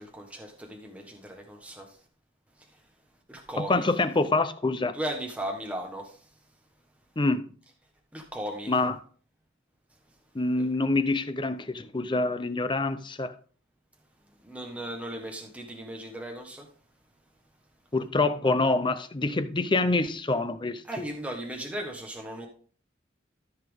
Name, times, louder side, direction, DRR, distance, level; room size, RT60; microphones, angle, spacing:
voice 1, 0.0-2.0 2.6-2.8 3.3-3.9 4.9-6.3 8.1-8.7 10.6-10.7 14.4-16.7 20.8-22.5, right 1 dB, 5° right, 1.4 m, -37 dB
voice 2, 3.6-5.0 7.2-7.5 8.7-9.0 10.3-13.3 17.9-21.0, left 2 dB, 25° left, 0.6 m, -26 dB
13.5 x 5.8 x 3.6 m
head